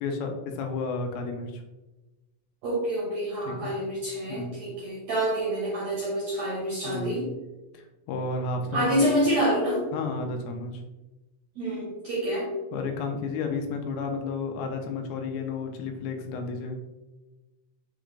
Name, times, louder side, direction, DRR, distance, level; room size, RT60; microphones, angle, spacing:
voice 1, 0.0-1.6 3.5-3.7 4.3-4.5 6.8-7.3 8.1-9.0 9.9-10.8 12.7-16.8, left 4 dB, 85° left, 4 dB, 2.5 m, -32 dB
voice 2, 2.6-7.3 8.7-9.9 11.6-12.5, right 1 dB, 80° right, -4 dB, 1.6 m, -27 dB
6.1 x 2.5 x 3.1 m, 1.1 s
omnidirectional pair, 4.3 m